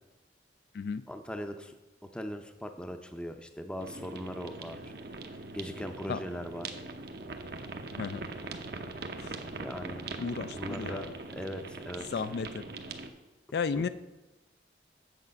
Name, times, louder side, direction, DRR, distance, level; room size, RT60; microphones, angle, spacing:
voice 1, 1.1-1.7 2.1-4.8 5.5-6.7 9.5-10.0 10.5-12.1 13.7-13.8, equal, 5° left, 7 dB, 0.5 m, -39 dB
sound 1, 3.8-13.1, right 3 dB, 60° right, 0.7 m, -41 dB
voice 2, 10.2-11.1 12.1-12.6 13.5-13.9, left 5 dB, 60° left, 13 dB, 0.3 m, -33 dB
7.8 x 7.0 x 5.2 m, 1.1 s
head